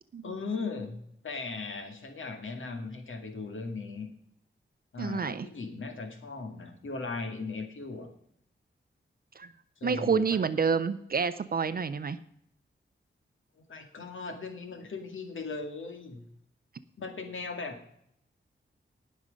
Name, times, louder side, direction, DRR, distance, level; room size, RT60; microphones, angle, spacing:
voice 1, 0.2-4.1 4.9-8.1 9.8-10.4 13.7-16.2 17.0-17.8, left 4 dB, 80° left, 5 dB, 2.0 m, -38 dB
voice 2, 5.0-5.5 9.4-9.5 9.8-12.2, right 6 dB, 50° right, 13 dB, 0.5 m, -28 dB
18.5 x 6.4 x 5.2 m, 0.71 s
wide cardioid pair, 165°, 20 cm